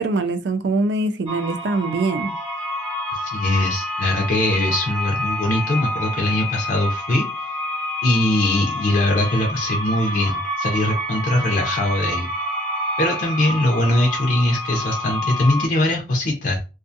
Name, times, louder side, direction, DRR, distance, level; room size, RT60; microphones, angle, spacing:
voice 1, 0.0-2.3, right 3 dB, 75° right, 0.4 m, -23 dB
sound 1, 1.3-15.7, left 1 dB, 25° right, 0.8 m, -28 dB
voice 2, 3.2-7.2 8.0-12.3 13.0-16.6, left 1 dB, 50° left, 0.5 m, -21 dB
2.4 x 2.4 x 2.6 m
head